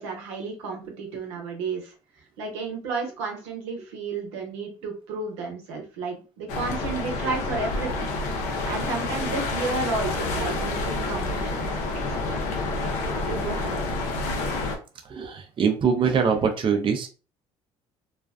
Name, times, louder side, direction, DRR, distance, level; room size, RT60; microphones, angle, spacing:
voice 1, 0.0-1.9 2.4-11.7 12.1-12.4 12.8-13.0 13.2-13.8, right 4 dB, 90° right, 2 dB, 0.8 m, -32 dB
sound 1, 6.5-14.8, left 3 dB, 75° left, 0.7 m, -28 dB
voice 2, 15.0-17.1, right 6 dB, 40° right, 4 dB, 0.5 m, -23 dB
2.4 x 2.2 x 2.4 m, 0.34 s
supercardioid pair, 75°, 14 cm